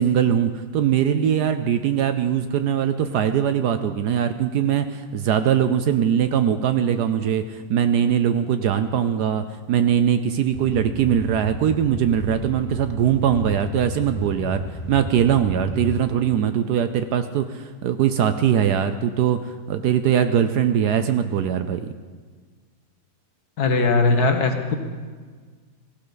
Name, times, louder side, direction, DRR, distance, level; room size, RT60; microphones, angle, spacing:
voice 1, 0.0-21.9, right 9 dB, 70° right, 10 dB, 1.1 m, -21 dB
sound 1, 10.5-16.0, left 1 dB, 5° right, 4.4 m, -33 dB
voice 2, 23.6-24.8, left 3 dB, 60° left, 5 dB, 1.5 m, -19 dB
17.5 x 15.0 x 4.0 m, 1.5 s
omnidirectional pair, 2.0 m